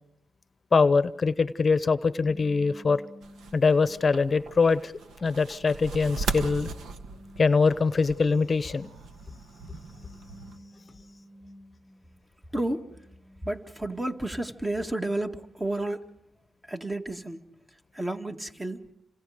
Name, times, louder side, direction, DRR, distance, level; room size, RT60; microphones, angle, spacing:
voice 1, 0.7-3.0 3.5-4.9 5.2-6.7 7.4-8.9, left 4 dB, 40° left, 0.9 m, -23 dB
sound 1, 2.2-4.4 5.0-8.1 9.3-12.2 12.7-15.7, equal, 55° right, 4.5 m, -53 dB
sound 2, 3.2-10.6, right 4 dB, 80° right, 1.5 m, -38 dB
voice 2, 12.5-12.9 13.4-16.1 16.6-17.5 17.9-18.9, right 1 dB, 20° right, 2.1 m, -31 dB
29.0 x 26.5 x 5.1 m
cardioid pair, 60°, 0 cm